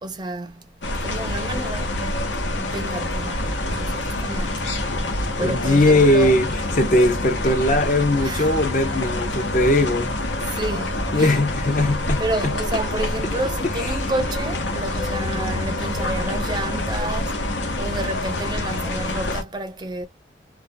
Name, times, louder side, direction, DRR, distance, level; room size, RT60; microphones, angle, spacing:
voice 1, 0.0-4.9 5.4-6.4 8.2-8.5 10.4-11.4 12.2-17.5 17.8-20.1, right 2 dB, 25° right, 0.4 m, -30 dB
sound 1, 0.8-19.4, left 1 dB, 80° left, 0.9 m, -26 dB
voice 2, 5.4-6.5 6.8-10.4 11.1-12.5 13.8-13.9, left 1 dB, 45° left, 0.6 m, -19 dB
2.4 x 2.2 x 2.5 m
head